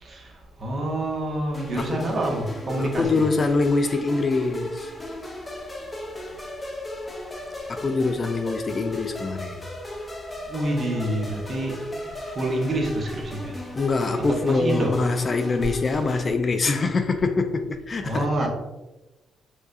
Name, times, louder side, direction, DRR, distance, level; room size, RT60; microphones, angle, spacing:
voice 1, 0.0-0.3 0.6-3.3 10.5-13.5 14.2-14.9 18.0-18.5, right 1 dB, 40° right, 1.0 m, -27 dB
sound 1, 1.5-16.3, left 1 dB, 20° left, 0.7 m, -35 dB
voice 2, 1.7-2.1 2.8-4.9 7.7-9.6 13.7-18.3, left 3 dB, 35° left, 0.3 m, -24 dB
4.8 x 2.3 x 2.6 m
cardioid pair, 90°, 0 cm